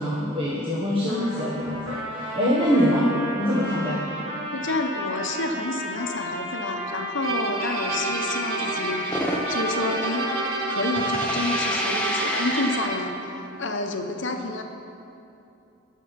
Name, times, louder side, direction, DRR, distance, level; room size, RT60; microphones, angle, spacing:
voice 1, 0.0-3.1 3.4-4.0, equal, 25° right, -7 dB, 1.4 m, -24 dB
Trumpet, 1.1-13.5, equal, 55° right, 2.7 m, -34 dB
voice 2, 4.5-9.2 9.5-10.3 10.7-14.6, left 2 dB, 55° left, 4 dB, 1.0 m, -29 dB
sound 1, 7.2-13.2, right 3 dB, 80° right, 1.1 m, -29 dB
sound 2, 7.6-10.7 11.0-13.0, left 1 dB, 5° left, 0.9 m, -31 dB
17.5 x 6.4 x 5.9 m, 2.7 s
head